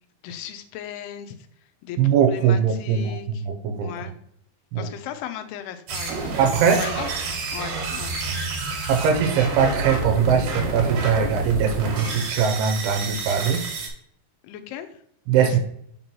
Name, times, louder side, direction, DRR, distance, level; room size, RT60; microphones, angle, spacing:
voice 1, 0.2-1.4 1.8-3.4 3.8-4.1 4.8-6.3 6.8-7.1 7.5-8.2 14.4-15.0 15.4-15.6, left 10 dB, 85° left, 9 dB, 2.6 m, -36 dB
voice 2, 2.0-3.9 4.7-4.9 6.4-6.9 8.7-13.6 15.3-15.6, right 7 dB, 90° right, 4 dB, 2.6 m, -21 dB
sound 1, 5.9-13.9, right 3 dB, 65° right, 2.7 m, -29 dB
6.1 x 5.3 x 2.9 m, 0.69 s
omnidirectional pair, 4.5 m